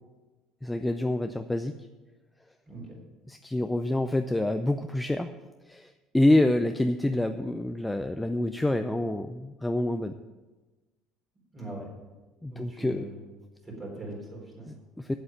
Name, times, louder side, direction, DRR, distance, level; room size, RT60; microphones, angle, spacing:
voice 1, 0.6-1.7 3.3-5.3 5.6-10.2 12.4-13.1 14.7-15.1, left 1 dB, 5° left, 8 dB, 0.4 m, -27 dB
voice 2, 2.7-3.0 11.5-11.9 12.5-13.2 13.6-14.8, right 1 dB, 20° right, -1 dB, 3.9 m, -40 dB
8.0 x 8.0 x 8.9 m, 1.2 s
cardioid pair, 140°, 0 cm